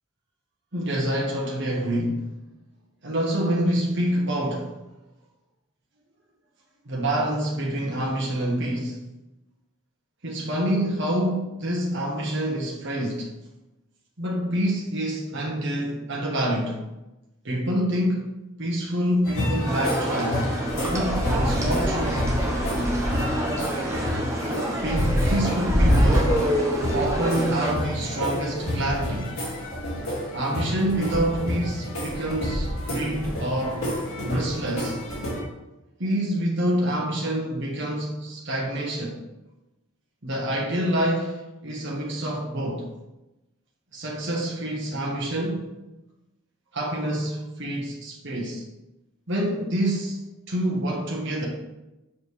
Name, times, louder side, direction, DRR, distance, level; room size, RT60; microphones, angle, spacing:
voice 1, 0.7-2.3 3.0-4.7 6.9-9.0 10.2-13.3 14.2-16.8 17.4-18.3 18.6-20.5 20.9-22.3 24.8-26.4 26.9-29.4 30.3-33.8 34.2-35.0 36.0-39.2 40.2-42.9 43.9-45.7 46.7-48.6 49.3-50.2 50.5-51.5, right 1 dB, 55° right, 1.2 m, -27 dB
sound 1, 19.2-35.4, left 1 dB, 75° left, 2.3 m, -27 dB
sound 2, 19.7-27.7, right 1 dB, 15° right, 0.9 m, -28 dB
7.0 x 5.0 x 3.3 m
head